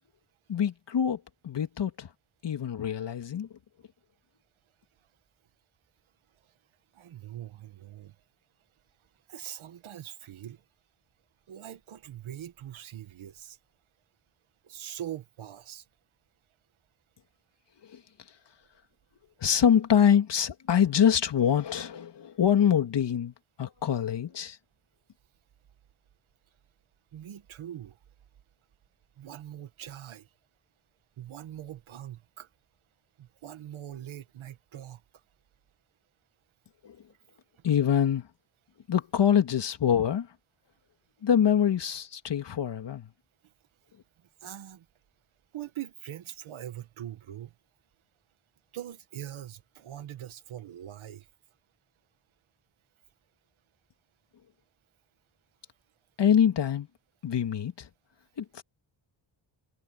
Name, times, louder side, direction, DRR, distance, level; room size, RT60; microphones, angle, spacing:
voice 1, 0.5-2.1 2.4-3.5 17.8-18.0 19.4-24.6 36.8-37.0 37.6-38.3 38.9-40.3 41.2-43.1 56.2-56.9 57.2-57.9 58.4-58.6, left 8 dB, 60° left, 2.4 m, -25 dB
voice 2, 6.9-8.2 9.3-10.6 11.5-13.6 14.6-15.9 27.1-28.0 29.2-30.3 31.2-32.5 33.2-35.0 37.6-37.7 43.4-43.5 44.2-44.9 45.5-47.5 48.7-51.3, right 11 dB, 80° right, 1.9 m, -42 dB
cardioid pair, 100°, 47 cm